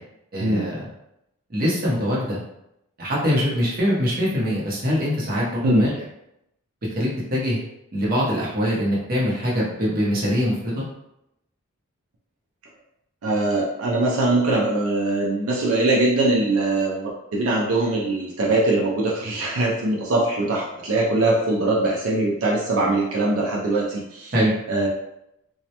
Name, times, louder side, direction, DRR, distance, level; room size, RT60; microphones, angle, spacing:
voice 1, 0.3-0.9 1.5-2.4 3.0-5.9 7.0-7.6 7.9-10.8 24.3-24.5, equal, 40° right, -5 dB, 0.7 m, -23 dB
voice 2, 13.2-24.3 24.7-24.9, right 2 dB, 80° right, -3 dB, 0.4 m, -22 dB
2.1 x 2.0 x 2.8 m, 0.82 s
head